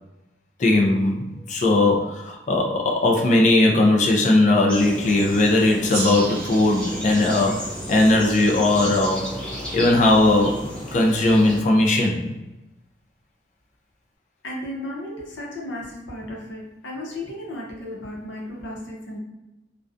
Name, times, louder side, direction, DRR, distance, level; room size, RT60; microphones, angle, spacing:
voice 1, 0.6-9.3 9.7-12.3, left 2 dB, 40° left, 1 dB, 0.4 m, -19 dB
sound 1, 4.7-11.6, equal, 5° left, 0.7 m, -34 dB
Gong, 5.9-9.0, right 2 dB, 60° right, 0.7 m, -36 dB
voice 2, 14.4-19.2, left 1 dB, 85° left, -2 dB, 0.7 m, -34 dB
2.4 x 2.2 x 2.5 m, 0.98 s
head